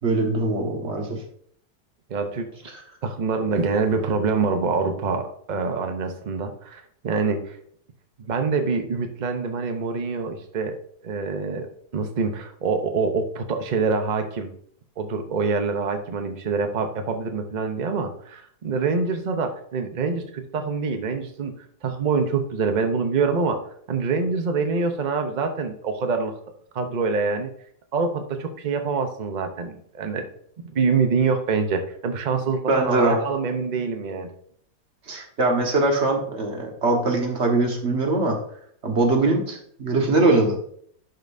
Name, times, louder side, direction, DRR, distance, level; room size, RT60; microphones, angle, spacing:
voice 1, 0.0-1.2 2.7-2.8 32.7-33.2 35.1-38.4 38.8-40.6, right 2 dB, 40° right, 2 dB, 1.5 m, -22 dB
voice 2, 2.1-2.5 3.0-7.6 8.2-10.8 11.0-14.5 15.0-21.5 21.8-23.6 23.9-26.3 26.7-27.5 27.9-30.2 30.7-34.3, right 4 dB, 80° right, 6 dB, 0.4 m, -25 dB
11.5 x 5.3 x 2.6 m, 0.63 s
omnidirectional pair, 1.9 m